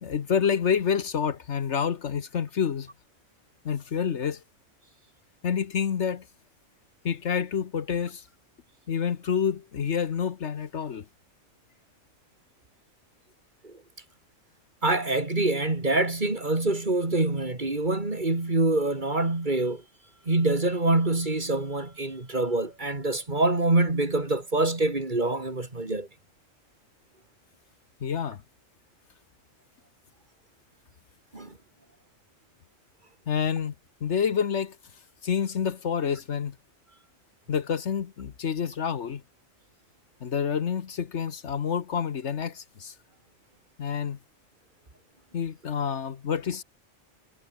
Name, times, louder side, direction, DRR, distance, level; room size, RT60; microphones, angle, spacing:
voice 1, 0.0-2.9 3.6-4.4 5.4-6.2 7.0-8.3 8.9-11.0 28.0-28.4 33.3-33.7 34.0-34.8 35.2-36.6 37.5-39.2 40.2-42.9 43.8-44.2 45.3-46.6, left 7 dB, 65° left, 1.3 m, -28 dB
voice 2, 14.8-19.8 20.3-26.1 31.3-31.5, right 2 dB, 35° right, 3.0 m, -25 dB
omnidirectional pair, 1.3 m